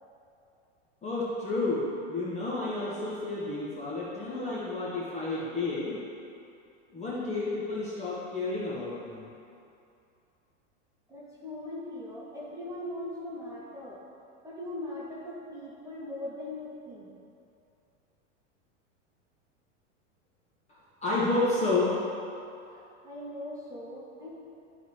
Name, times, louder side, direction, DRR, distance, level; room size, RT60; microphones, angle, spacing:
voice 1, 1.0-6.1 6.9-9.3 20.7-22.0, left 2 dB, 20° left, -8 dB, 1.7 m, -31 dB
voice 2, 11.1-14.0 14.4-17.1 22.7-24.3, left 1 dB, 10° right, -7 dB, 2.1 m, -40 dB
12.0 x 4.2 x 4.6 m, 2.6 s
hypercardioid pair, 115°, 36 cm